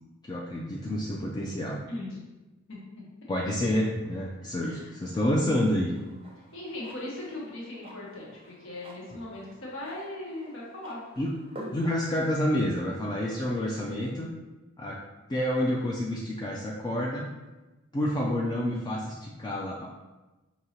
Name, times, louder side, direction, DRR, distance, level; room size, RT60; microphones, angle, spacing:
voice 1, 0.2-1.8 3.3-5.9 11.2-11.3 11.7-14.3 14.8-15.0 15.3-17.3 17.9-19.9, left 1 dB, 20° left, -3 dB, 0.3 m, -28 dB
voice 2, 1.9-2.3 2.7-3.0 4.6-4.9 6.5-11.0 13.6-13.8, left 1 dB, 65° left, -4 dB, 1.2 m, -39 dB
sound 1, 5.9-12.1, equal, 25° right, 0.6 m, -48 dB
5.2 x 2.7 x 2.9 m, 1.1 s
head